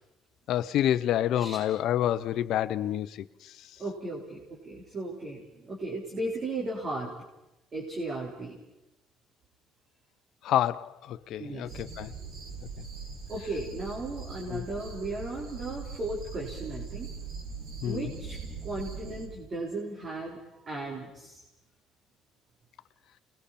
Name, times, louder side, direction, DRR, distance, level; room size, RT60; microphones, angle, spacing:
voice 1, 0.5-3.6 10.4-12.1 14.5-14.6 17.8-18.1, left 11 dB, 70° left, 0.7 m, -28 dB
voice 2, 3.8-7.1 7.7-8.6 11.4-11.8 13.3-17.1 17.8-21.4, right 2 dB, 40° right, 4.5 m, -36 dB
sound 1, 11.7-19.2, right 5 dB, 65° right, 6.3 m, -41 dB
29.5 x 21.0 x 4.3 m
supercardioid pair, 75°, 0 cm